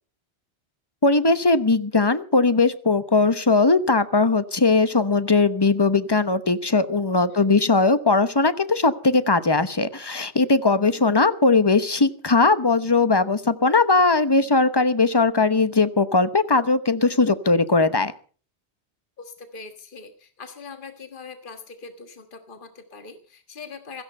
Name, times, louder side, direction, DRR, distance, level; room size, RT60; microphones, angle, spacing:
voice 1, 1.0-18.1, left 3 dB, 25° left, 12 dB, 1.0 m, -19 dB
voice 2, 19.2-24.0, left 4 dB, 50° left, 7 dB, 1.7 m, -41 dB
16.5 x 14.5 x 5.5 m, 0.41 s
omnidirectional pair, 1.1 m